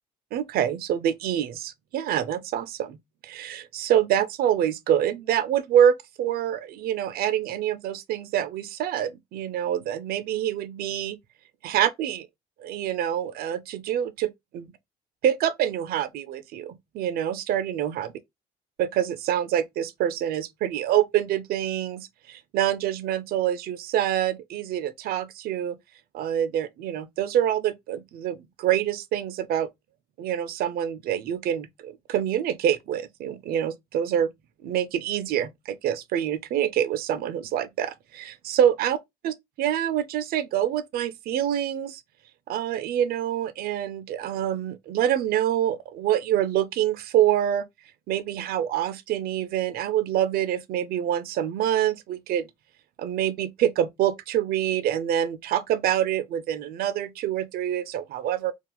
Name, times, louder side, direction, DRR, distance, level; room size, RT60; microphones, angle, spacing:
voice 1, 0.3-3.0 3.2-11.2 11.6-12.3 12.6-14.7 15.2-18.1 18.8-25.8 26.1-29.7 30.2-34.3 34.6-39.0 39.2-42.0 42.5-47.7 48.1-52.5 53.0-58.5, right 10 dB, 65° right, 0.4 m, -26 dB
2.4 x 2.3 x 2.8 m
cardioid pair, 110°, 17 cm